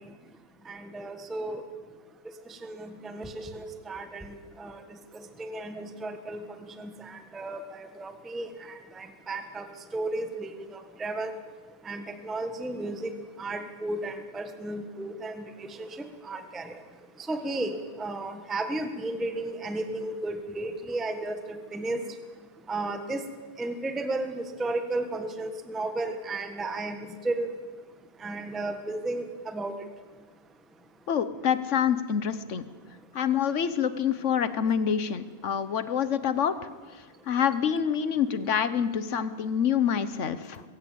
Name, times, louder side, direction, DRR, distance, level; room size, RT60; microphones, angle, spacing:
voice 1, 0.7-1.6 2.6-4.3 4.6-4.8 5.4-6.4 6.8-9.7 9.9-10.5 11.0-11.3 11.8-13.1 13.4-15.9 16.2-16.7 17.3-17.7 18.0-22.0 22.7-23.2 23.6-27.5 28.2-29.2 29.5-29.7, right 2 dB, ahead, 7 dB, 1.0 m, -33 dB
voice 2, 31.1-32.6 33.1-36.6 37.3-40.6, left 8 dB, 55° left, 13 dB, 0.8 m, -26 dB
21.5 x 16.5 x 8.6 m, 1.4 s
omnidirectional pair, 2.4 m